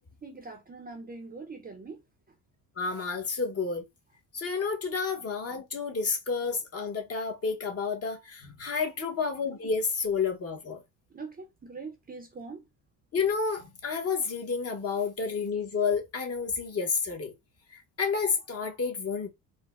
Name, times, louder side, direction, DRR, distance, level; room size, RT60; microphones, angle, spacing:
voice 1, 0.2-2.0 11.1-12.6, right 4 dB, 20° right, 0.5 m, -42 dB
voice 2, 2.8-3.8 4.3-10.8 13.1-17.3 17.7-19.3, left 5 dB, 35° left, 0.8 m, -30 dB
4.1 x 2.0 x 2.3 m
cardioid pair, 100°, 42 cm